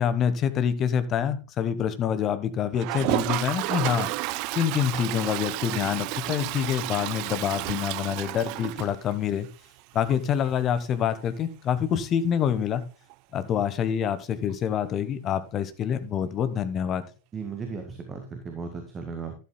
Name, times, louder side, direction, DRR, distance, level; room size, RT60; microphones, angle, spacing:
voice 1, 0.0-4.1 4.5-9.5 9.9-12.8 13.3-17.0, left 8 dB, 30° left, 12 dB, 1.2 m, -26 dB
Toilet flush, 2.7-9.5 9.8-9.9 10.1-10.2 10.4-10.5 13.1-13.2 14.5-14.6, right 20 dB, 45° right, 0.4 m, -31 dB
voice 2, 17.3-19.3, right 5 dB, 20° right, 5 dB, 1.8 m, -36 dB
12.0 x 11.5 x 2.3 m, 0.34 s
figure-of-eight pair, 90°, 0 cm